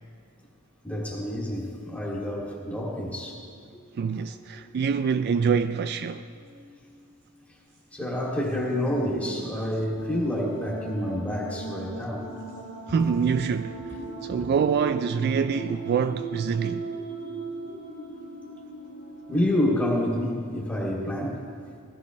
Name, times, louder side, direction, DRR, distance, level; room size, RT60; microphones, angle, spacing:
voice 1, 0.8-3.4 7.9-12.3 19.3-21.4, left 1 dB, 5° left, 2.5 m, -28 dB
voice 2, 4.0-6.2 9.6-9.7 12.9-13.7 14.2-16.9, right 6 dB, 50° right, 0.3 m, -25 dB
sound 1, 6.4-7.0 7.3-7.4 8.4-20.9, right 3 dB, 85° right, 3.8 m, -39 dB
17.5 x 14.5 x 3.2 m
head